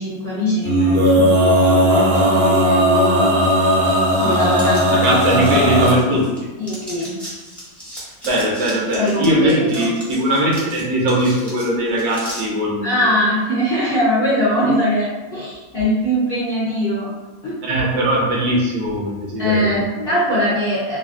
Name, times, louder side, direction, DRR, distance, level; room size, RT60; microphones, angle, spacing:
voice 1, 0.0-3.3 4.2-5.5 6.6-7.2 8.9-9.9 12.8-17.1 17.4-17.5 19.4-21.0, equal, 50° left, -10 dB, 0.6 m, -21 dB
Male singing, 0.6-5.9, equal, 60° right, 0.6 m, -16 dB
sound 1, 4.6-6.4 6.6-12.4, equal, ahead, 0.6 m, -36 dB
voice 2, 5.0-6.3 8.2-13.2 17.7-20.1, right 1 dB, 80° right, -3 dB, 1.3 m, -20 dB
3.1 x 2.3 x 2.4 m, 1.2 s
omnidirectional pair, 1.8 m